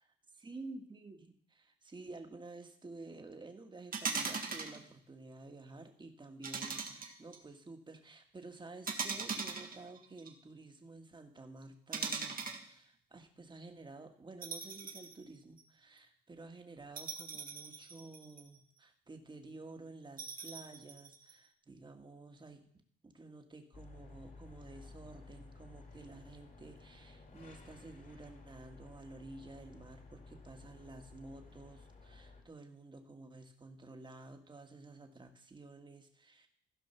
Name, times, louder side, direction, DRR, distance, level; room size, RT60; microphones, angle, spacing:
voice 1, 0.4-22.7 23.0-36.5, right 2 dB, 25° right, 5 dB, 1.7 m, -52 dB
sound 1, 3.9-4.8 6.4-7.4 8.9-10.3 11.9-12.6 14.4-15.2 15.6-15.7 17.0-18.6 20.2-21.3, right 5 dB, 45° right, 1.7 m, -40 dB
sound 2, 23.7-32.4, left 3 dB, 45° left, 2.5 m, -55 dB
15.5 x 5.4 x 5.7 m, 0.64 s
cardioid pair, 90°, 20 cm